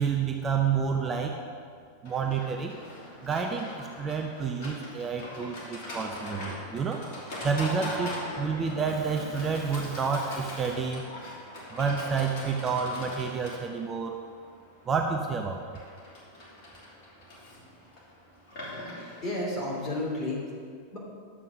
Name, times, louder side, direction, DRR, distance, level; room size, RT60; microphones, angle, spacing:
voice 1, 0.0-1.4 2.0-2.8 3.2-7.0 7.4-11.1 11.7-14.2 14.9-15.6, right 5 dB, 20° right, 3 dB, 0.7 m, -29 dB
Livestock farm animals working animals, 2.0-20.1, left 1 dB, 50° left, 2.9 m, -41 dB
voice 2, 18.6-20.5 20.9-21.0, left 1 dB, 30° left, -3 dB, 3.1 m, -33 dB
11.5 x 7.6 x 5.1 m, 2.2 s
figure-of-eight pair, 90°, 0 cm